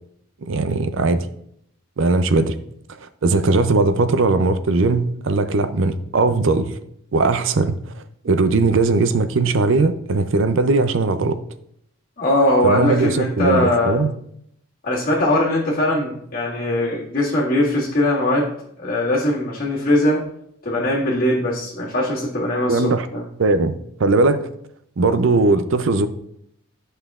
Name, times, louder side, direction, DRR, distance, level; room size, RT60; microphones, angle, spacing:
voice 1, 0.4-1.3 2.0-2.5 3.0-6.8 7.1-7.8 8.2-11.4 12.6-14.1 22.7-23.1 23.4-23.7 24.0-24.4 25.0-26.1, right 3 dB, 65° right, 11 dB, 0.5 m, -19 dB
voice 2, 12.2-14.0 14.8-18.5 18.8-20.2 20.6-23.2, left 1 dB, 40° left, -8 dB, 1.9 m, -20 dB
10.0 x 5.5 x 2.4 m, 0.72 s
head